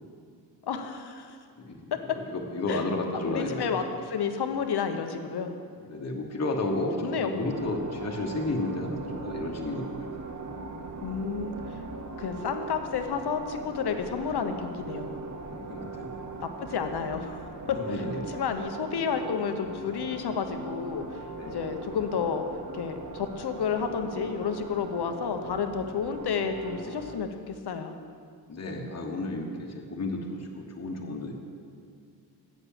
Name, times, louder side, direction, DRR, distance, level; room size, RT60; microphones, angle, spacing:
voice 1, 0.6-1.4 2.7-2.8 3.1-5.5 7.0-7.8 11.0-11.8 12.2-15.2 16.6-21.2 21.5-22.5 22.7-28.0, left 6 dB, 65° left, 7 dB, 0.9 m, -31 dB
voice 2, 1.6-3.8 5.9-10.1 15.7-16.3 17.7-18.3 21.4-21.6 28.5-31.3, left 2 dB, 40° left, 1 dB, 1.2 m, -32 dB
sound 1, 7.5-27.2, right 3 dB, 40° right, 0.9 m, -40 dB
8.1 x 7.0 x 7.3 m, 2.2 s
cardioid pair, 90°, 43 cm